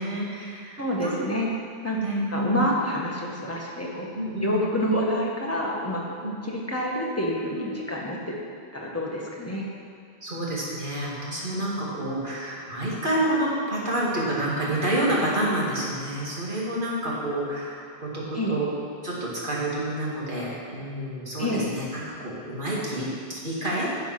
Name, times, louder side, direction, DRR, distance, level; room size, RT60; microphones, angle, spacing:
voice 1, 0.0-1.3 1.9-2.7 4.2-4.6 6.2-6.4 7.5-7.8 10.2-18.8 19.0-23.9, right 1 dB, 50° right, -6 dB, 2.6 m, -29 dB
voice 2, 0.8-1.5 1.8-2.0 2.3-4.1 4.4-8.3 8.7-9.6 18.3-18.6 21.4-21.7, equal, 15° left, -3 dB, 1.6 m, -28 dB
10.5 x 7.7 x 6.0 m, 2.4 s
omnidirectional pair, 1.1 m